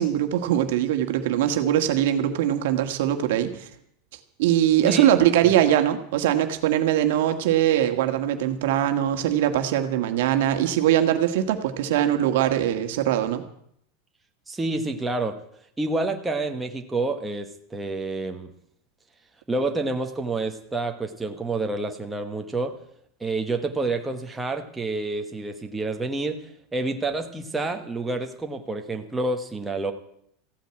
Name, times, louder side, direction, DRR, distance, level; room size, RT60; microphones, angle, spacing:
voice 1, 0.0-3.7 4.4-13.4, right 11 dB, 65° right, 6 dB, 1.6 m, -22 dB
voice 2, 14.5-15.4 15.8-18.5 19.5-22.8 23.2-29.9, right 2 dB, 5° right, 3 dB, 1.1 m, -28 dB
15.0 x 9.1 x 8.8 m, 0.70 s
supercardioid pair, 175°, 0 cm